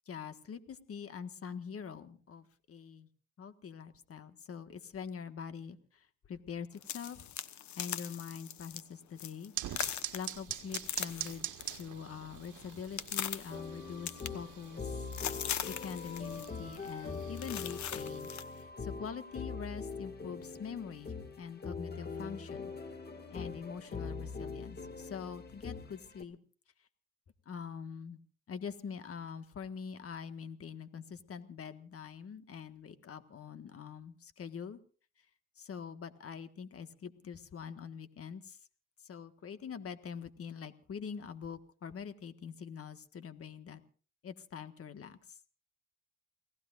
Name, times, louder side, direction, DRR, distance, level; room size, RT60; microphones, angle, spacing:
voice 1, 0.1-3.1 3.4-7.3 7.8-9.5 10.1-11.5 11.7-15.0 15.7-22.7 23.3-26.4 27.5-28.2 28.5-34.8 35.6-38.6 39.0-43.8 44.2-45.4, left 7 dB, 50° left, 9 dB, 1.6 m, -44 dB
sound 1, 6.8-8.8 9.2-9.5 9.7-11.9 12.2-13.6 14.1-14.8 15.1-16.5 16.7-16.9 17.4-18.5, left 10 dB, 70° left, 1.2 m, -40 dB
sound 2, 9.6-18.2, right 12 dB, 75° right, 1.6 m, -45 dB
sound 3, 13.5-26.2, left 4 dB, 35° left, 2.2 m, -43 dB
29.5 x 18.0 x 2.5 m, 0.40 s
cardioid pair, 90°, 30 cm